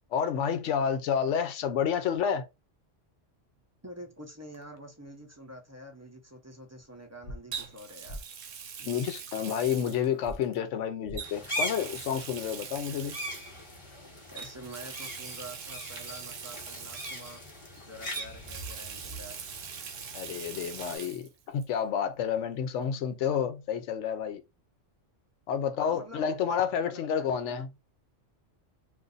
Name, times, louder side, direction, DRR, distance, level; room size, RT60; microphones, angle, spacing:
voice 1, 0.1-2.4 8.8-13.2 20.1-24.4 25.5-27.7, left 8 dB, 70° left, 1.0 m, -30 dB
voice 2, 3.8-8.2 14.3-17.4 17.8-19.4 25.9-26.3 26.8-27.7, equal, 15° right, 0.6 m, -47 dB
Water tap faucet, 4.5-4.8 7.5-10.6 11.1-13.6 14.4-17.8 18.1-21.3 21.6-21.7 23.3-23.4, right 7 dB, 80° right, 1.0 m, -42 dB
sound 1, 7.2-7.4 8.1-8.2 10.2-10.4 11.0-11.2, equal, 55° left, 0.4 m, -39 dB
sound 2, 11.2-21.0, equal, 25° left, 1.2 m, -41 dB
2.6 x 2.5 x 3.8 m
omnidirectional pair, 1.3 m